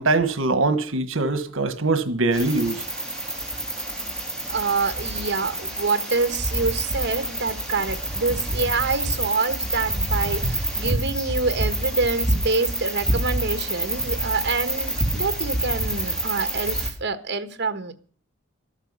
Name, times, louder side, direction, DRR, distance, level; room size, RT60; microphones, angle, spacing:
voice 1, 0.0-2.9, right 3 dB, 80° right, 1.3 m, -22 dB
sound 1, 2.3-16.9, right 1 dB, 5° left, 3.8 m, -27 dB
voice 2, 4.5-17.9, right 4 dB, 60° right, 1.4 m, -26 dB
13.0 x 13.0 x 5.5 m
head